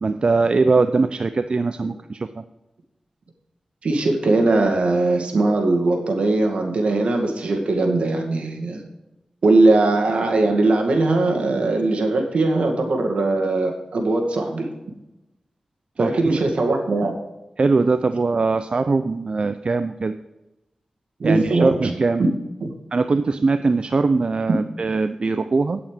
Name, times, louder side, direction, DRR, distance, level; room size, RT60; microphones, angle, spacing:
voice 1, 0.0-2.4 16.0-16.4 17.6-20.2 21.2-22.3 22.9-25.8, right 3 dB, 55° right, 10 dB, 0.5 m, -21 dB
voice 2, 3.8-8.8 9.4-14.7 16.0-17.1 21.2-21.7 22.6-22.7, right 2 dB, 75° right, 2 dB, 2.2 m, -20 dB
9.4 x 8.5 x 5.1 m, 0.95 s
cardioid pair, 55°, 2 cm